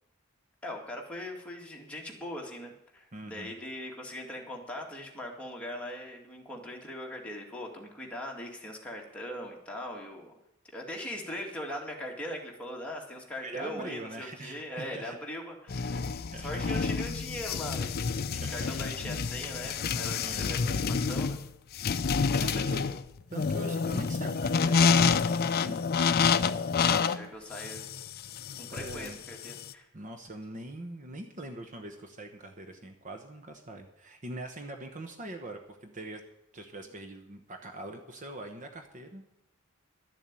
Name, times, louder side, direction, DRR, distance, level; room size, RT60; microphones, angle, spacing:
voice 1, 0.6-10.3 10.7-16.0 16.4-18.0 18.5-21.4 22.2-22.9 26.8-27.9 28.6-29.9, left 1 dB, 5° left, -1 dB, 2.2 m, -40 dB
voice 2, 3.1-3.5 13.4-15.2 16.3-16.7 18.3-18.9 20.2-20.8 22.4-22.9 23.3-25.8 28.7-29.2 29.9-36.2 36.5-39.2, right 1 dB, 40° right, 5 dB, 1.0 m, -42 dB
sound 1, 15.7-29.7, left 5 dB, 50° left, 0.5 m, -28 dB
12.0 x 7.1 x 8.9 m, 0.83 s
head